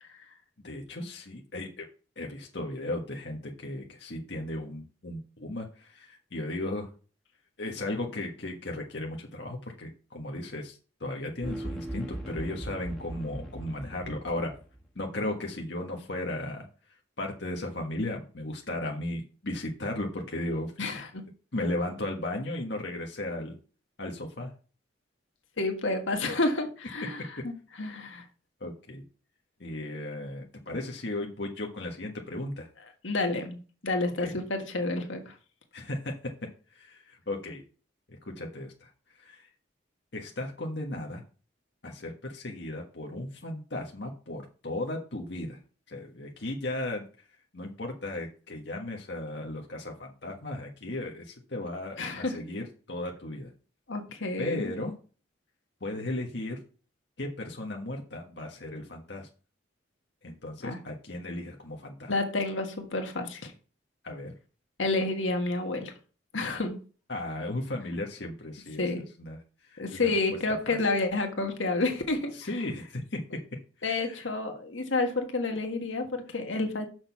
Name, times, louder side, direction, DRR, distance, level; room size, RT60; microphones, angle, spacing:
voice 1, 0.6-1.8 2.2-6.9 7.6-14.5 14.9-16.7 17.2-21.1 21.5-23.6 24.0-24.5 28.6-29.0 29.6-32.7 34.2-34.3 35.7-36.1 36.7-37.6 38.1-38.9 39.2-39.5 40.1-41.2 41.8-45.6 45.9-47.0 47.5-53.5 54.4-54.9 55.8-56.6 57.2-59.3 60.2-62.1 64.0-64.3 67.1-68.8 69.2-69.4 69.7-70.1 70.7-70.8 72.3-73.2 73.8-74.2, left 1 dB, 65° left, 1 dB, 1.4 m, -35 dB
sound 1, 11.4-14.8, right 1 dB, ahead, 1.5 m, -39 dB
voice 2, 20.8-21.2 25.6-27.5 27.8-28.3 33.0-33.6 33.8-35.3 52.0-52.4 53.9-54.7 60.6-60.8 62.1-63.5 64.8-65.9 66.3-66.8 68.8-69.0 69.8-72.3 73.8-76.9, left 2 dB, 90° left, 4 dB, 1.6 m, -29 dB
6.3 x 6.3 x 5.9 m, 0.37 s
head